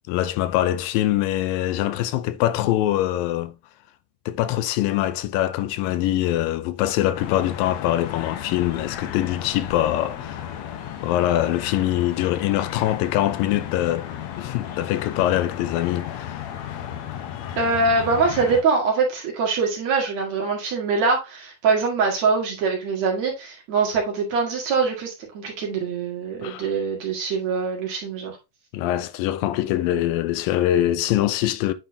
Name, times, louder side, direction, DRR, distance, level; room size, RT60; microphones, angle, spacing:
voice 1, 0.1-3.5 4.3-10.4 11.0-14.1 14.4-16.4 26.4-26.7 28.7-31.7, left 13 dB, 85° left, 2.4 m, -23 dB
sound 1, 7.1-18.6, left 10 dB, 70° left, 1.7 m, -34 dB
voice 2, 17.6-28.4, right 4 dB, 55° right, 3.0 m, -23 dB
9.3 x 4.3 x 2.7 m
omnidirectional pair, 3.9 m